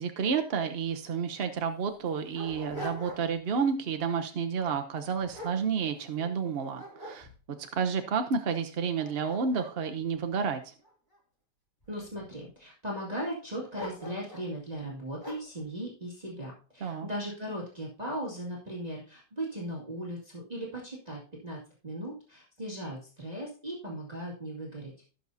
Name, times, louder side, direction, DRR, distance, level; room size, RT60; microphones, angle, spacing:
voice 1, 0.0-7.3 7.7-10.7 16.8-17.1, right 6 dB, 55° right, 6 dB, 0.7 m, -30 dB
Dog, 1.2-1.3 1.9-3.5 3.9-4.2 4.8-6.3 6.7-7.7 8.3-8.4 8.8-11.2 11.8-12.4 13.7-14.5 15.2-15.6, equal, 10° left, 2.4 m, -44 dB
voice 2, 11.9-24.9, right 1 dB, 25° right, -4 dB, 2.1 m, -38 dB
16.5 x 6.3 x 2.7 m, 0.37 s
omnidirectional pair, 1.9 m